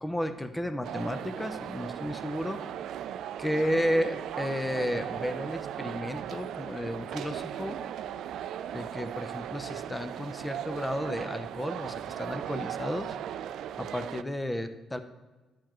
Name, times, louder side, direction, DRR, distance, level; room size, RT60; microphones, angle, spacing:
voice 1, 0.0-2.6 3.4-7.8 8.7-13.1 13.8-15.0, equal, 10° left, 9 dB, 0.7 m, -32 dB
sound 1, 0.8-14.2, right 10 dB, 80° right, 0.3 m, -37 dB
11.0 x 9.0 x 3.1 m, 1.2 s
cardioid pair, 90°, 0 cm